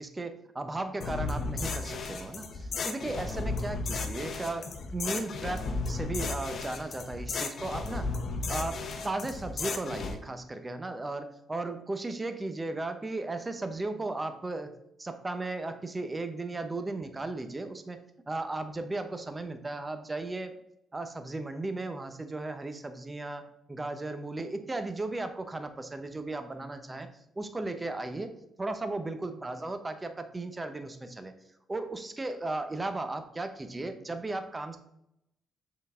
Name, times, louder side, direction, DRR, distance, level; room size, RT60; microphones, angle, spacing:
voice 1, 0.0-8.1 8.5-14.7 15.0-18.0 18.3-20.6 20.9-27.1 27.4-28.3 28.6-31.3 31.7-34.8, right 2 dB, 20° right, 8 dB, 0.7 m, -36 dB
sound 1, 1.0-10.2, left 3 dB, 55° left, 0.8 m, -34 dB
6.7 x 3.8 x 3.6 m, 0.79 s
cardioid pair, 90°, 0 cm